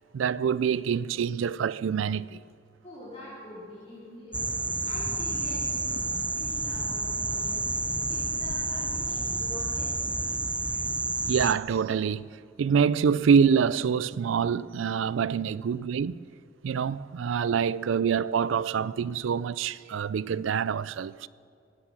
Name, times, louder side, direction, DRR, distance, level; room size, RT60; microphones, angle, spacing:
voice 1, 0.1-2.4 11.3-12.2 12.6-16.2 16.6-21.3, right 6 dB, 70° right, 0.4 m, -26 dB
voice 2, 2.8-4.5 4.8-10.2, left 1 dB, 30° left, 4.1 m, -45 dB
sound 1, 4.3-11.5, right 2 dB, 5° right, 0.4 m, -30 dB
17.0 x 9.6 x 7.2 m
head